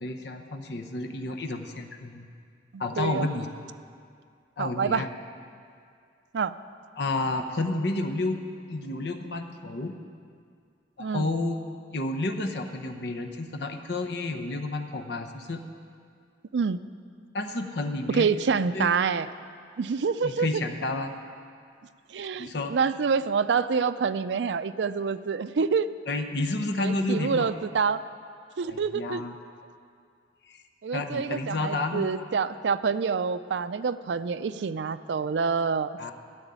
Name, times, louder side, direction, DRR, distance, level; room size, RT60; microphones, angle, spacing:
voice 1, 0.0-2.3 2.8-3.5 4.6-5.1 7.0-8.4 8.7-10.0 11.0-11.6 11.9-15.6 17.3-18.3 18.7-18.9 20.2-21.1 22.4-22.7 26.1-27.5 28.6-29.3 30.4-30.6 30.9-32.1 36.0-36.1, left 2 dB, 70° left, 5 dB, 0.9 m, -30 dB
voice 2, 2.7-3.3 4.6-5.0 6.3-6.5 11.0-11.3 16.5-16.8 18.1-19.3 19.8-20.6 22.1-25.9 26.8-28.0 28.6-29.2 30.8-36.1, right 5 dB, 80° right, 13 dB, 0.4 m, -27 dB
13.0 x 7.1 x 10.0 m, 2.2 s
head